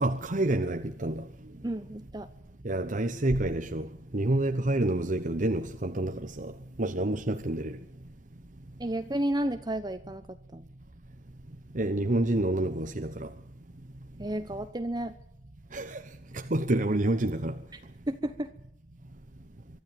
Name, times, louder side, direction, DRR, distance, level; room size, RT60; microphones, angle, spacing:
voice 1, 0.0-1.2 2.6-3.9 4.1-6.5 6.8-7.8 11.7-13.3 15.7-16.0 16.3-17.6, right 1 dB, 45° right, 1.1 m, -28 dB
voice 2, 1.6-2.3 8.8-10.7 14.2-15.1 18.1-18.5, right 1 dB, 25° right, 1.0 m, -32 dB
24.0 x 13.0 x 9.4 m
head